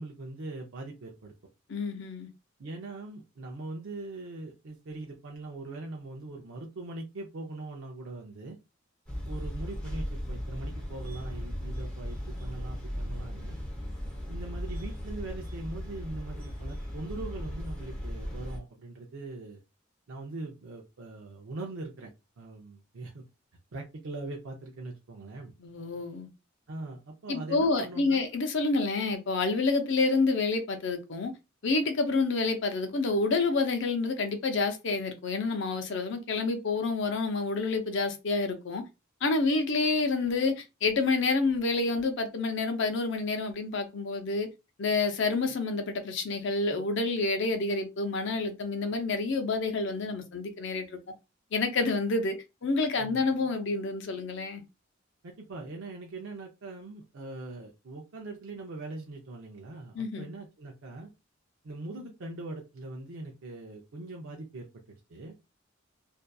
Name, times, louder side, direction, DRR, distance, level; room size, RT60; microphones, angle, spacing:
voice 1, 0.0-1.3 2.6-8.6 9.2-13.6 14.3-19.6 20.1-23.2 23.7-25.5 26.7-28.3 53.0-53.2 55.2-61.1 61.6-65.3, right 2 dB, 80° right, 0.5 m, -41 dB
voice 2, 1.7-2.3 25.6-26.3 27.3-31.3 31.6-38.8 39.2-44.5 44.8-51.0 51.5-54.6 59.9-60.3, left 3 dB, 65° left, 0.5 m, -28 dB
sound 1, 9.1-18.6, equal, 5° left, 0.8 m, -37 dB
2.6 x 2.3 x 2.2 m
head